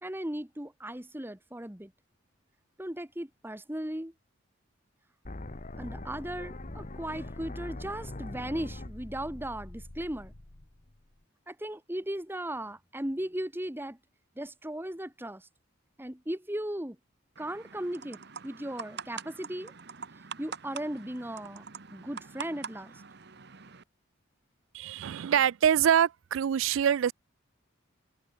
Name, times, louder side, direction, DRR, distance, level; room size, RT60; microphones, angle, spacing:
voice 1, 0.0-1.9 2.8-4.1 5.8-10.3 11.5-14.0 14.4-15.5 16.0-17.0 17.4-19.7 20.4-21.6 21.9-22.9, right 1 dB, 10° right, 1.5 m, -37 dB
sound 1, 5.2-11.2, left 1 dB, 40° left, 1.2 m, -42 dB
sound 2, 17.4-23.8, right 6 dB, 55° right, 1.2 m, -45 dB
voice 2, 24.7-27.1, right 9 dB, 70° right, 0.3 m, -25 dB
head